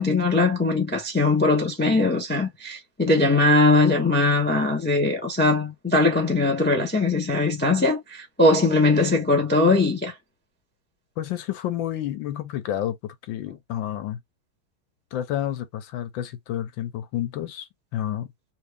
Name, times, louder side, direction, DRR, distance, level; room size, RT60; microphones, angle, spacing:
voice 1, 0.0-10.1, left 2 dB, 15° left, 0.4 m, -20 dB
voice 2, 11.2-14.2 15.1-18.3, left 11 dB, 75° left, 1.4 m, -30 dB
3.0 x 2.8 x 3.3 m
omnidirectional pair, 2.2 m